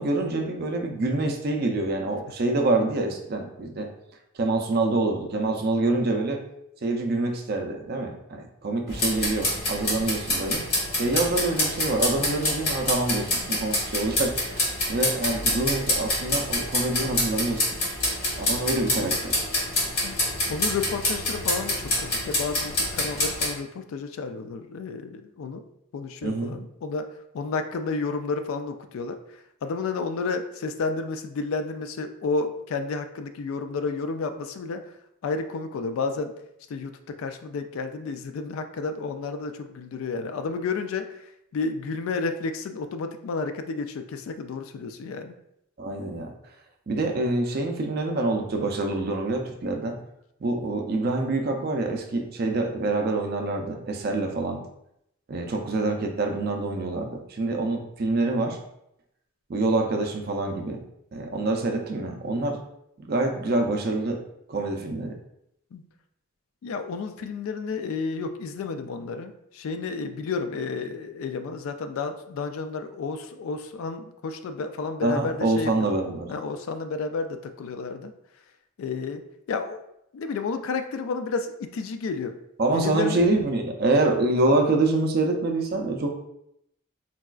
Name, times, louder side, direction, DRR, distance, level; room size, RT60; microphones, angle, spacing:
voice 1, 0.0-3.9 4.4-6.4 6.8-10.7 11.0-14.6 14.9-17.7 18.4-19.4 26.2-26.5 45.8-46.3 46.9-50.0 50.4-54.7 55.3-58.6 59.5-60.8 61.1-62.6 63.1-64.2 64.5-65.2 75.0-76.3 82.6-86.1, right 2 dB, 45° right, 3 dB, 0.4 m, -26 dB
sound 1, 8.9-23.5, left 1 dB, 50° left, 1.2 m, -27 dB
voice 2, 20.5-25.6 25.9-27.1 27.3-34.9 35.2-36.3 36.7-41.3 41.5-45.3 65.7-65.8 66.6-76.0 76.3-78.1 78.8-79.2 79.5-79.8 80.1-82.3 82.7-83.2, left 4 dB, 80° left, 8 dB, 0.3 m, -31 dB
3.9 x 2.3 x 2.3 m, 0.78 s
head